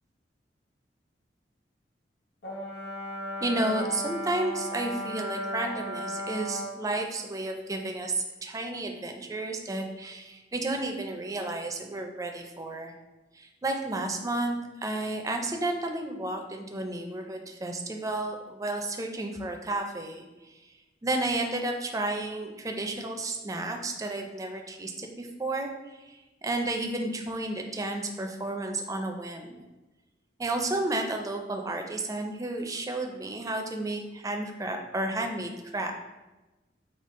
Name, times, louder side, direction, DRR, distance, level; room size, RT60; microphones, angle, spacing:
Brass instrument, 2.4-6.8, equal, 65° left, 0.8 m, -35 dB
voice 1, 3.4-12.9 13.3-20.6 21.0-25.7 26.0-29.6 30.4-35.9, right 2 dB, 20° right, 3 dB, 0.4 m, -32 dB
5.1 x 2.4 x 3.6 m, 1.1 s
head